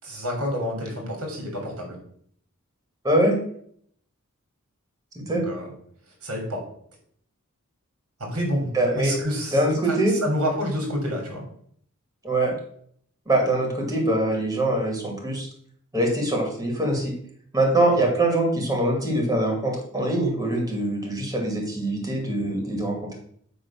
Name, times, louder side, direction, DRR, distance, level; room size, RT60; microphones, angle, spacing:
voice 1, 0.0-2.0 5.3-5.7 6.2-6.6 8.2-10.0 10.2-11.4 17.9-18.1, equal, 90° right, 0 dB, 3.5 m, -28 dB
voice 2, 3.0-3.4 5.3-5.4 8.7-9.1 9.5-10.1 12.2-12.5 13.3-15.5 15.9-17.1 17.5-23.2, right 1 dB, 15° right, 1 dB, 2.3 m, -23 dB
8.8 x 3.7 x 6.4 m, 0.62 s
head